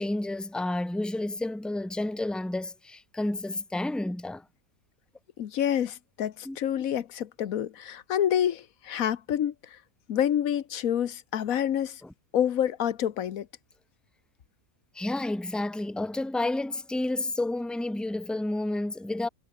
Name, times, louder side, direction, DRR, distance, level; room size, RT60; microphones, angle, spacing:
voice 1, 0.0-4.4 6.4-6.6 12.0-12.1 14.9-19.3, left 2 dB, ahead, 1.1 m, -30 dB
voice 2, 5.4-9.8 10.1-12.0 12.3-13.5, left 10 dB, 90° left, 1.4 m, -28 dB
omnidirectional pair, 1.4 m